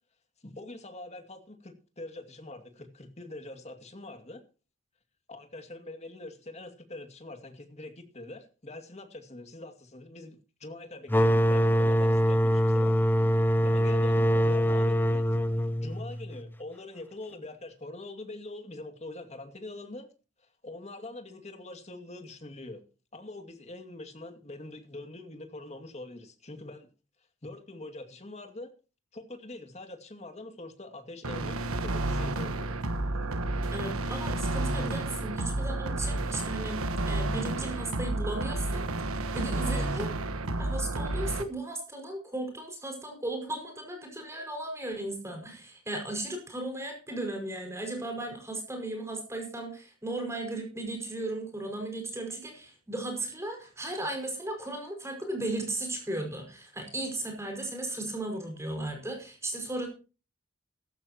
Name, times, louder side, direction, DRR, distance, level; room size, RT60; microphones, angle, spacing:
voice 1, 0.4-4.4 5.3-13.4 13.6-15.3 15.8-20.1 20.4-22.8 23.1-26.9 27.4-28.7 29.1-32.8 33.1-33.3 39.6-40.0, left 2 dB, 30° left, 6 dB, 2.3 m, -44 dB
sound 1, 11.1-16.5, equal, 10° left, 0.8 m, -24 dB
sound 2, 31.2-41.4, right 2 dB, 85° right, 1.3 m, -31 dB
voice 2, 33.7-36.8 37.1-40.1 40.4-59.9, right 2 dB, 15° right, 3 dB, 5.4 m, -36 dB
15.5 x 14.5 x 2.9 m, 0.34 s
head